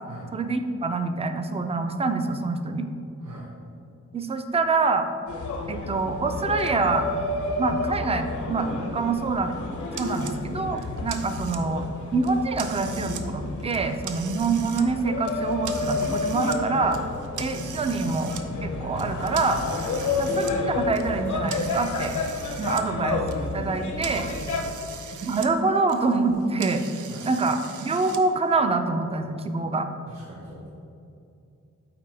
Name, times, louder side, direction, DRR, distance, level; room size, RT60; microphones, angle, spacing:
voice 1, 0.3-2.9 4.1-5.1 5.7-7.1 7.6-9.5 10.0-11.9 12.1-17.0 17.4-18.3 18.6-19.6 20.2-22.2 22.6-24.3 25.2-26.8 27.2-29.9, right 3 dB, 20° right, 7 dB, 0.4 m, -25 dB
voice 2, 3.2-3.5 20.0-20.2 22.5-23.0 24.5-24.8 27.1-27.3 30.1-30.7, right 2 dB, 60° right, -5 dB, 1.2 m, -43 dB
sound 1, 5.3-24.6, left 3 dB, 75° left, 0.8 m, -30 dB
sound 2, 9.9-10.4 10.8-11.8 12.2-13.2 13.6-14.8 15.2-16.6 16.9-18.4 19.0-22.9 23.1-25.5 25.8-28.2, right 7 dB, 90° right, 0.6 m, -40 dB
8.7 x 4.1 x 3.3 m, 2.6 s
wide cardioid pair, 135°, 30 cm